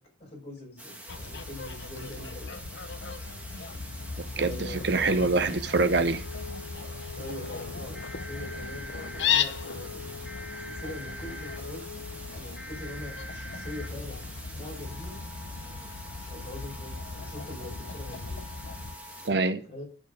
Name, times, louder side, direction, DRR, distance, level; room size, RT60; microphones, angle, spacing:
voice 1, 0.2-2.5 4.3-5.6 7.1-10.3 10.6-12.0 12.3-14.2 14.5-15.2 16.2-18.4 19.7-19.9, left 1 dB, 35° left, 5.0 m, -43 dB
sound 1, 0.8-19.3, right 1 dB, 10° right, 1.6 m, -45 dB
Fowl, 1.1-19.0, left 6 dB, 70° left, 0.7 m, -36 dB
voice 2, 4.4-6.2 19.2-19.6, right 3 dB, 60° right, 0.7 m, -25 dB
Wind instrument woodwind instrument, 5.8-12.6, left 5 dB, 15° left, 2.4 m, -45 dB
10.5 x 7.1 x 5.1 m
head